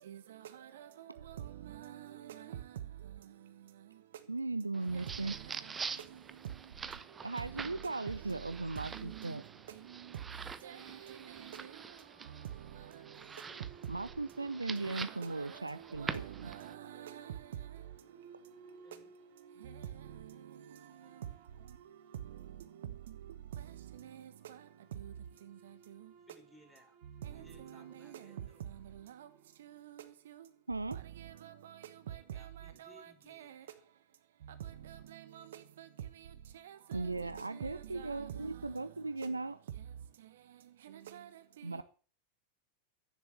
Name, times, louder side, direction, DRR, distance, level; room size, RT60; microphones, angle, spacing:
voice 1, 1.6-2.5 8.9-9.1 10.6-10.8 16.0-17.3 31.4-31.5 32.8-33.0 33.3-33.4 35.1-35.2 37.9-38.1 41.1-41.3, right 11 dB, 60° right, 1.2 m, -47 dB
voice 2, 4.3-5.4 7.2-9.4 13.9-16.5 30.7-31.0 36.9-39.6 41.6-41.8, right 3 dB, 80° right, 0.8 m, -37 dB
sound 1, 4.7-16.7, right 5 dB, 15° right, 0.9 m, -46 dB
voice 3, 8.5-10.0 18.8-19.1 26.2-27.0 27.2-28.6 32.1-33.8, equal, ahead, 3.8 m, -63 dB
sound 2, 13.4-30.0, right 5 dB, 40° right, 2.7 m, -60 dB
11.0 x 10.0 x 7.4 m
figure-of-eight pair, 90°, 0 cm